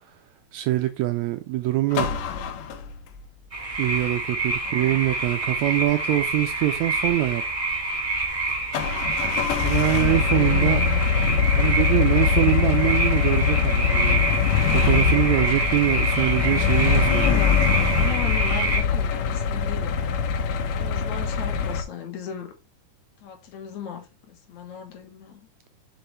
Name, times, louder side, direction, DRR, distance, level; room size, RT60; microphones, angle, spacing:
voice 1, 0.5-2.1 3.8-7.4 9.6-10.8 11.5-14.2 14.7-17.4, right 16 dB, 80° right, 1.7 m, -24 dB
sound 1, 1.9-3.2 8.7-21.8, left 6 dB, 90° left, 2.4 m, -23 dB
sound 2, 3.5-18.8, right 2 dB, 15° right, 1.7 m, -27 dB
voice 2, 4.7-5.0 9.9-11.1 17.0-20.0 20.7-22.5 23.2-25.4, left 8 dB, 70° left, 2.7 m, -36 dB
6.8 x 5.4 x 3.2 m
omnidirectional pair, 3.6 m